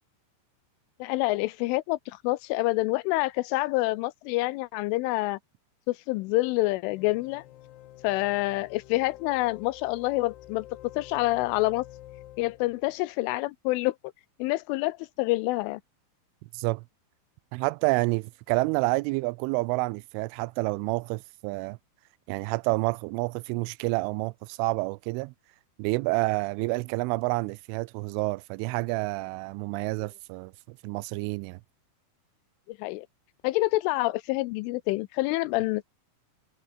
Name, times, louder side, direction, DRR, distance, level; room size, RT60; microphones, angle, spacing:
voice 1, 1.0-5.4 5.9-7.4 8.0-10.7 11.0-11.9 12.4-14.0 14.4-15.8 32.7-33.1 33.4-35.8, left 20 dB, 85° left, 3.1 m, -27 dB
sound 1, 6.9-13.0, left 14 dB, 65° left, 3.1 m, -49 dB
voice 2, 16.5-16.8 17.5-21.8 22.3-25.3 25.8-31.6, right 25 dB, 85° right, 3.0 m, -29 dB
omnidirectional pair, 5.7 m